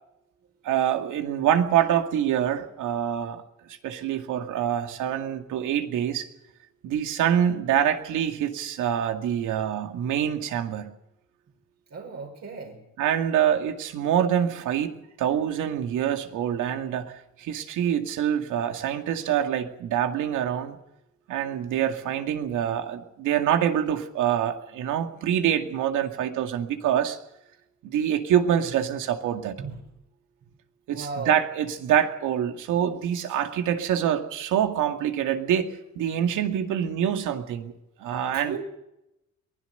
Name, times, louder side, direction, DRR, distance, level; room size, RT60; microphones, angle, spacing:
voice 1, 0.6-3.4 3.8-6.3 6.8-10.9 13.0-17.1 17.4-20.8 21.3-27.2 27.8-29.6 30.9-37.7 38.0-38.6, right 9 dB, 90° right, 6 dB, 2.3 m, -25 dB
voice 2, 11.9-12.8 29.6-29.8 30.9-31.4 38.3-38.6, right 4 dB, 60° right, 0 dB, 5.8 m, -36 dB
23.0 x 17.0 x 6.8 m, 0.86 s
cardioid pair, 90°, 30 cm